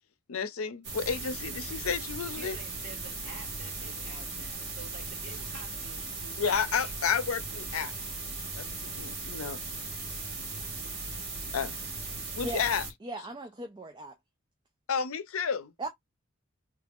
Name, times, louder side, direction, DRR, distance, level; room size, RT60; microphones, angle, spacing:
voice 1, 0.3-2.6 6.4-7.9 8.5-9.6 11.5-11.8 12.4-12.8 14.9-15.7, left 6 dB, 90° left, 0.6 m, -31 dB
sound 1, 0.8-12.9, right 3 dB, 55° right, 1.4 m, -38 dB
voice 2, 2.3-6.4, right 2 dB, 35° right, 2.2 m, -49 dB
voice 3, 13.0-14.2 15.8-15.9, right 2 dB, 20° right, 0.5 m, -37 dB
3.3 x 2.5 x 3.5 m
head